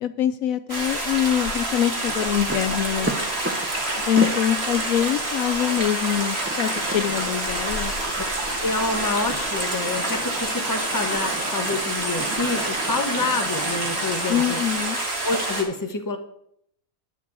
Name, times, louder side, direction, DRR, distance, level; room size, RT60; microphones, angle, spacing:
voice 1, 0.0-3.1 4.1-7.9 14.3-15.0, left 10 dB, 75° left, 12 dB, 1.0 m, -24 dB
Stream, 0.7-15.6, right 2 dB, 45° right, 2.4 m, -27 dB
sound 1, 2.1-14.9, right 1 dB, 10° right, 0.7 m, -36 dB
voice 2, 8.6-14.6 15.2-16.2, left 3 dB, 15° left, 5 dB, 1.1 m, -27 dB
10.0 x 5.4 x 8.3 m, 0.70 s
omnidirectional pair, 1.5 m